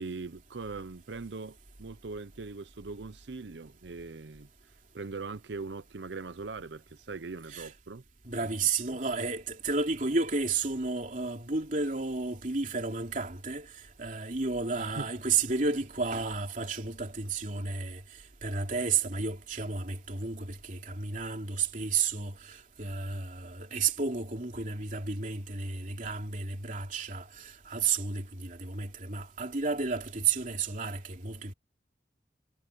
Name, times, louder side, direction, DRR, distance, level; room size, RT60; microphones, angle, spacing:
voice 1, 0.0-4.5 4.9-8.0 8.4-8.5 14.8-15.1, right 3 dB, 80° right, 0.7 m, -41 dB
voice 2, 8.2-18.0 18.4-31.5, right 4 dB, 45° right, 3.1 m, -32 dB
head